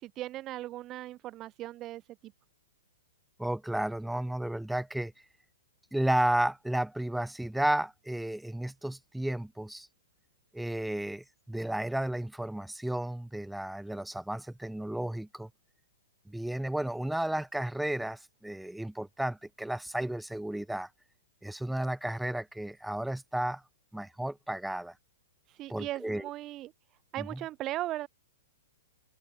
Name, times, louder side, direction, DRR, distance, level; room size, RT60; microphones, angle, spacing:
voice 1, 0.0-2.0 25.5-26.7 27.1-28.1, right 15 dB, 30° right, 0.4 m, -37 dB
voice 2, 3.4-5.1 5.9-9.9 10.5-15.5 16.3-20.9 21.4-23.6 23.9-24.9 25.7-26.3 27.2-27.4, right 1 dB, ahead, 1.8 m, -33 dB
open air
figure-of-eight pair, 110°, 0 cm